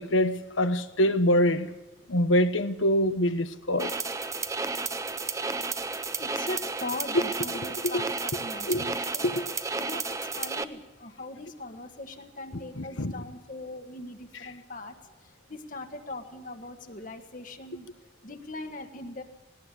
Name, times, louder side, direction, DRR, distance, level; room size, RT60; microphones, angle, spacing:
voice 1, 0.0-1.7 2.1-3.9 7.9-8.0 8.7-8.9 9.2-9.5 12.8-13.1, equal, 75° left, 1.2 m, -25 dB
sound 1, 3.8-10.6, right 4 dB, 15° right, 0.7 m, -32 dB
voice 2, 6.1-9.3 9.7-19.2, left 2 dB, 40° left, 1.4 m, -40 dB
19.0 x 18.5 x 8.3 m
head